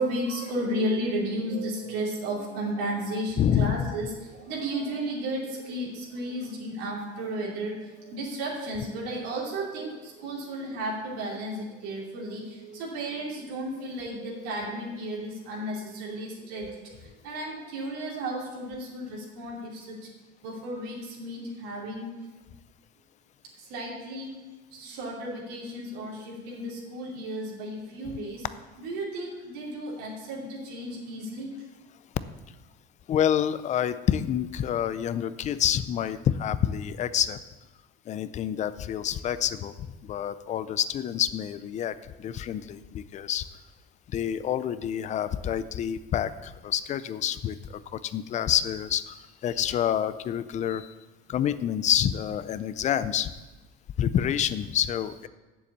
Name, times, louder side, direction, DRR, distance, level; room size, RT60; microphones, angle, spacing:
voice 1, 0.0-20.1 20.4-22.3 23.6-24.3 24.7-28.5 28.8-31.5, right 1 dB, 85° right, -4 dB, 2.8 m, -33 dB
voice 2, 3.4-3.9 33.1-37.4 38.1-43.5 44.1-49.2 49.4-50.9 51.3-53.3 54.0-55.3, left 10 dB, 35° left, 14 dB, 0.5 m, -28 dB
7.1 x 7.1 x 8.0 m, 1.2 s
cardioid pair, 140°, 21 cm